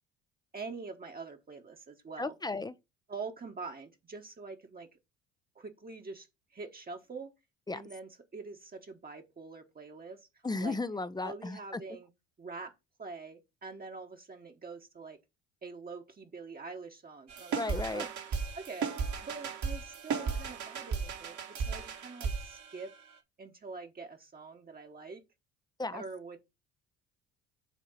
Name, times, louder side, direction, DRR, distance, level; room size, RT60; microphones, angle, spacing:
voice 1, 0.5-2.3 3.1-5.0 5.5-7.3 7.7-10.3 10.6-10.8 11.2-12.1 12.4-12.7 13.0-15.2 15.6-21.4 21.6-22.9 23.4-25.2 25.9-26.4, right 4 dB, 25° right, 1.2 m, -45 dB
voice 2, 2.2-2.7 7.7-7.8 10.4-11.6 17.5-18.0 25.8-26.0, left 3 dB, 10° left, 0.5 m, -34 dB
sound 1, 17.3-23.1, right 5 dB, 55° right, 1.6 m, -36 dB
8.3 x 2.8 x 5.5 m
hypercardioid pair, 60°, 34 cm